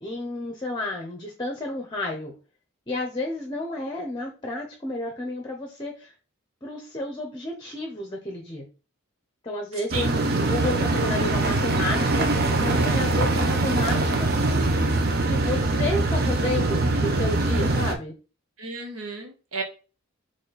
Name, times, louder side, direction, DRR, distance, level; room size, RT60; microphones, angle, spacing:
voice 1, 0.0-2.3 2.9-6.1 6.6-8.6 9.4-14.3 15.2-18.1, left 2 dB, 20° left, 3 dB, 0.7 m, -31 dB
sound 1, 9.9-17.9, right 2 dB, 45° right, 0.6 m, -23 dB
voice 2, 18.6-19.6, right 4 dB, 85° right, 4 dB, 1.2 m, -33 dB
4.1 x 3.1 x 4.0 m, 0.34 s
head